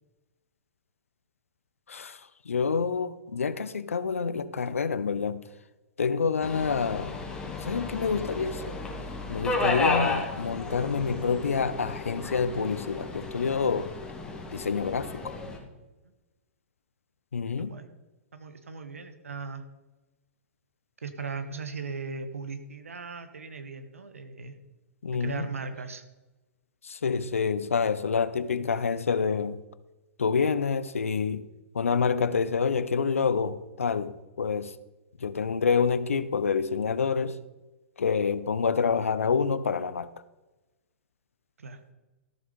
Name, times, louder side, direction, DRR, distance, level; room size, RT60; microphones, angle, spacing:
voice 1, 1.9-2.2 2.5-5.4 6.0-7.2 7.6-8.8 9.3-13.9 14.5-15.4 17.3-17.8 25.0-25.5 26.8-29.6 30.2-31.5 31.7-34.7 35.2-37.4 38.0-40.1, left 5 dB, 80° left, 0.7 m, -27 dB
Subway metro underground, 6.4-15.6, left 3 dB, 10° left, 2.2 m, -33 dB
voice 2, 17.6-17.9 18.3-19.6 21.0-24.5 25.1-26.0 41.6-41.8, right 4 dB, 80° right, 1.3 m, -38 dB
13.5 x 7.2 x 5.2 m
figure-of-eight pair, 110°, 7 cm